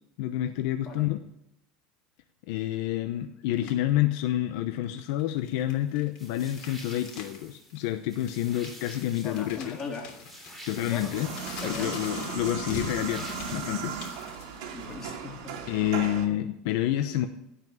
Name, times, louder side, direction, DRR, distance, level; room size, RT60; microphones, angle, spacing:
voice 1, 0.2-1.2 2.5-9.8 10.7-11.3 11.6-13.9 15.7-17.3, left 13 dB, 70° left, 7 dB, 0.9 m, -28 dB
sound 1, 3.5-3.9 4.8-7.4 7.7-7.8 8.2-15.2, left 5 dB, 50° left, 3.1 m, -43 dB
sound 2, 6.2-14.3, equal, ahead, 3.5 m, -48 dB
voice 2, 9.2-10.1 10.7-11.2 11.6-12.0 14.7-15.6, left 4 dB, 25° left, 0 dB, 3.4 m, -39 dB
sound 3, 11.1-16.3, right 6 dB, 70° right, 2.5 m, -37 dB
16.5 x 5.9 x 7.4 m, 0.79 s
supercardioid pair, 145°, 2 cm